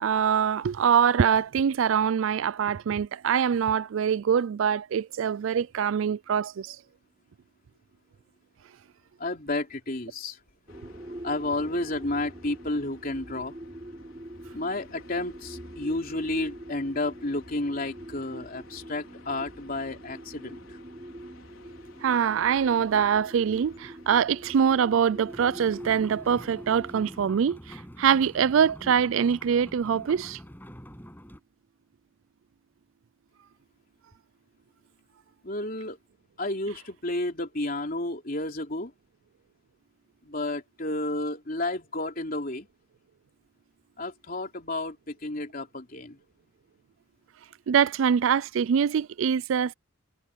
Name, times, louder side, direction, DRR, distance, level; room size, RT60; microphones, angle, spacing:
voice 1, 0.0-6.8 22.0-30.4 47.7-49.7, right 7 dB, 75° right, 0.4 m, -24 dB
voice 2, 9.2-10.4 11.2-13.6 14.5-20.8 35.4-36.0 36.4-38.9 40.2-42.7 44.0-46.2, left 2 dB, 45° left, 3.4 m, -31 dB
sound 1, 10.7-27.2, left 3 dB, 85° left, 5.0 m, -57 dB
sound 2, 10.7-28.8, right 1 dB, 25° right, 4.6 m, -45 dB
sound 3, 25.3-31.4, equal, 10° left, 6.2 m, -46 dB
head